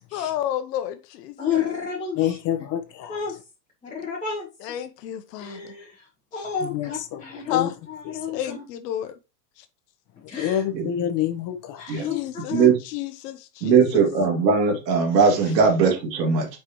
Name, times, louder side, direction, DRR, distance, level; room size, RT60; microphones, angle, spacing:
voice 1, 0.1-1.3 4.6-5.7 7.5-7.7 8.3-9.2 9.6-9.7 11.9-14.0, left 11 dB, 70° left, 0.9 m, -31 dB
voice 2, 1.4-2.7 3.1-3.4 3.8-4.5 5.4-8.7 10.3-10.6 11.8-12.7, left 7 dB, 15° left, 2.0 m, -31 dB
voice 3, 2.2-3.1 6.7-7.2 7.5-7.7 10.4-11.9, left 11 dB, 40° left, 1.0 m, -27 dB
voice 4, 13.6-16.5, right 5 dB, 85° right, 2.6 m, -19 dB
6.5 x 4.9 x 3.1 m
supercardioid pair, 130°, 49 cm